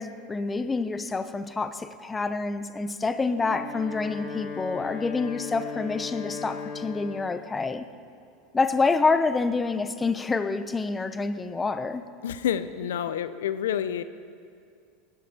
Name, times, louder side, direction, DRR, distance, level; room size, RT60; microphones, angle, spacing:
voice 1, 0.0-7.9 8.5-12.0, left 4 dB, 15° left, 12 dB, 0.7 m, -27 dB
Wind instrument woodwind instrument, 3.3-7.4, left 5 dB, 60° left, 3.8 m, -37 dB
voice 2, 12.2-14.0, left 9 dB, 85° left, 13 dB, 0.5 m, -28 dB
19.5 x 11.5 x 4.3 m, 2.4 s
hypercardioid pair, 105°, 0 cm